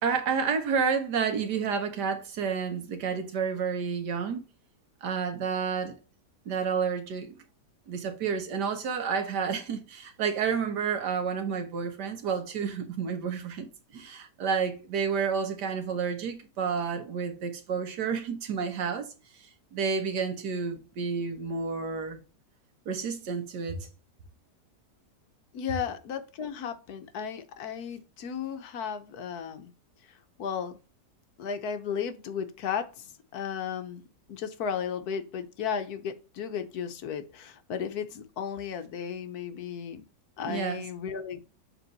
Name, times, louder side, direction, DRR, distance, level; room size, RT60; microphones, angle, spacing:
voice 1, 0.0-4.4 5.0-6.0 6.4-7.3 7.9-13.7 13.9-19.1 19.7-22.2 22.9-23.8 40.4-40.8, right 6 dB, 75° right, 1.7 m, -30 dB
voice 2, 25.5-29.7 30.4-30.8 31.4-34.0 34.3-40.0 40.4-41.4, left 7 dB, 70° left, 1.2 m, -34 dB
7.2 x 3.7 x 4.0 m
omnidirectional pair, 1.8 m